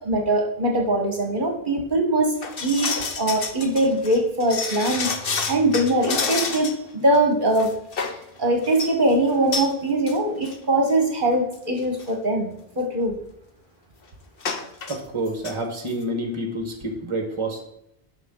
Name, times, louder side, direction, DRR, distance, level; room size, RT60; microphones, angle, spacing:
voice 1, 0.0-2.3 2.6-7.7 8.1-13.2, right 1 dB, 50° right, 2 dB, 1.4 m, -22 dB
sound 1, 2.4-6.9 7.1-7.2 7.5-8.2 8.6-8.9 9.5-9.7 10.1-10.2 10.4-10.6 11.3-11.4 11.8-12.0 14.4-15.0 15.3-15.5 15.9-16.0, left 4 dB, 60° left, 1.1 m, -29 dB
voice 2, 14.9-17.6, right 1 dB, 30° right, 4 dB, 1.3 m, -28 dB
11.0 x 5.9 x 3.8 m, 0.79 s
omnidirectional pair, 1.1 m